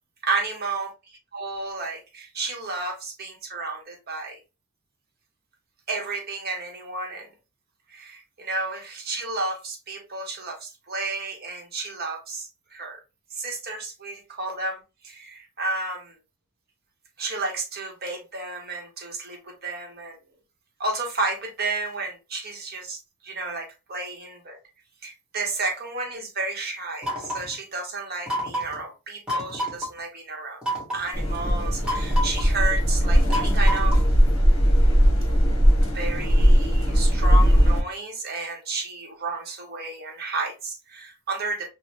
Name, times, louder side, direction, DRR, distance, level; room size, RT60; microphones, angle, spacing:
voice 1, 0.2-0.9 1.3-4.4 5.9-7.3 7.9-13.0 13.3-16.1 17.2-20.2 20.8-24.6 25.0-30.6 30.9-34.0 35.9-41.7, right 3 dB, 45° right, 0.8 m, -32 dB
sound 1, 27.0-27.5 28.3-28.8 29.3-29.9 30.6-31.1 31.8-32.5 33.3-34.1, equal, 5° right, 1.2 m, -29 dB
sound 2, 31.1-37.8, equal, 60° left, 0.9 m, -19 dB
3.1 x 2.0 x 2.9 m
head